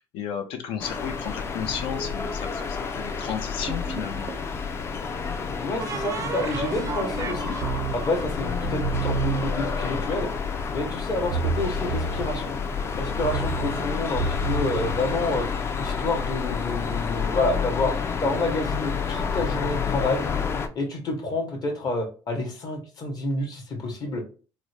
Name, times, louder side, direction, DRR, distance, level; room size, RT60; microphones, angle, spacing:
voice 1, 0.0-4.3, left 7 dB, 70° left, 6 dB, 0.5 m, -33 dB
sound 1, 0.8-20.7, left 5 dB, 25° left, 0.4 m, -29 dB
sound 2, 3.7-4.5 5.8-9.4, right 5 dB, 35° right, 0.4 m, -33 dB
voice 2, 5.6-7.6 7.9-10.3 10.7-12.5 13.0-15.5 15.8-20.2 20.7-24.2, left 2 dB, 40° left, 3 dB, 0.9 m, -28 dB
sound 3, 8.5-9.8 11.1-12.6 13.1-15.6, right 5 dB, 90° right, 0.8 m, -30 dB
3.7 x 2.1 x 3.2 m, 0.36 s
cardioid pair, 135°, 10 cm